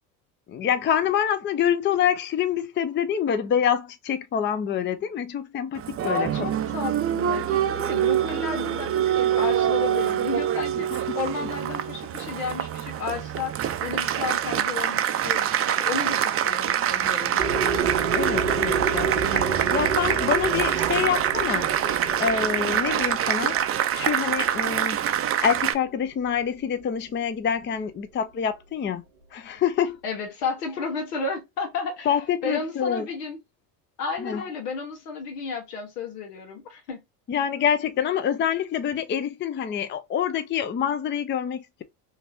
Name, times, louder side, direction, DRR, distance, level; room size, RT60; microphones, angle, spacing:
voice 1, 0.5-6.5 11.1-11.2 18.1-21.7 22.2-23.6 23.9-25.0 25.4-29.0 29.3-30.0 32.1-33.1 34.2-34.4 37.3-41.8, left 8 dB, 25° left, 0.5 m, -26 dB
Applause, 5.8-25.7, right 10 dB, 30° right, 0.5 m, -25 dB
voice 2, 6.0-17.7 30.0-32.1 32.4-33.4 34.0-37.0, left 4 dB, 85° left, 1.4 m, -32 dB
sound 1, 17.4-25.2, right 5 dB, 90° right, 1.4 m, -30 dB
3.8 x 2.6 x 2.6 m
hypercardioid pair, 80°, 47 cm